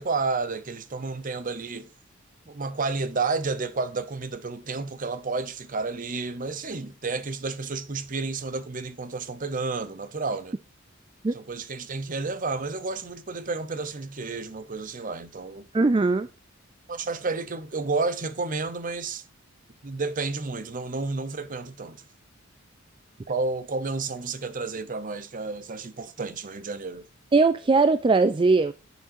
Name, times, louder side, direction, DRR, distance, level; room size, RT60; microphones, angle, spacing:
voice 1, 0.0-1.9 2.5-10.6 11.3-15.7 16.9-19.2 19.8-22.0 23.3-27.1, right 3 dB, 40° right, 0.9 m, -31 dB
voice 2, 15.7-16.3 27.3-28.7, right 3 dB, 25° right, 0.4 m, -20 dB
10.0 x 7.1 x 2.7 m
head